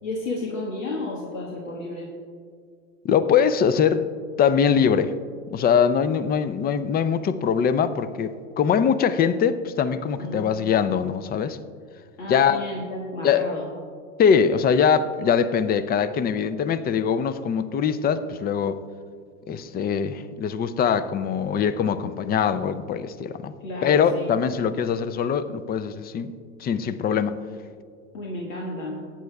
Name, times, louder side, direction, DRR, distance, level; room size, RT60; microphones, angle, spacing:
voice 1, 0.0-2.1 10.2-10.5 12.2-13.7 23.6-24.3 28.1-29.0, left 2 dB, 80° left, -3 dB, 1.6 m, -32 dB
voice 2, 3.0-4.1 4.4-5.1 5.5-11.6 12.3-12.6 13.2-13.4 14.2-18.8 19.5-23.5 23.8-26.3 26.6-27.4, left 7 dB, 25° left, 14 dB, 0.5 m, -22 dB
18.0 x 8.6 x 2.3 m, 2.1 s
hypercardioid pair, 85°, 39 cm